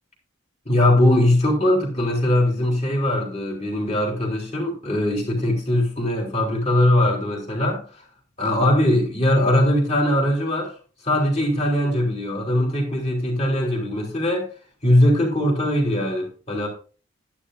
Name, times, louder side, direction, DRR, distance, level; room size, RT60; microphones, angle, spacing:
voice 1, 0.7-7.8 8.4-10.7 11.0-14.5 14.8-16.7, left 1 dB, 30° left, 3.5 m, -20 dB
11.5 x 11.0 x 2.5 m
head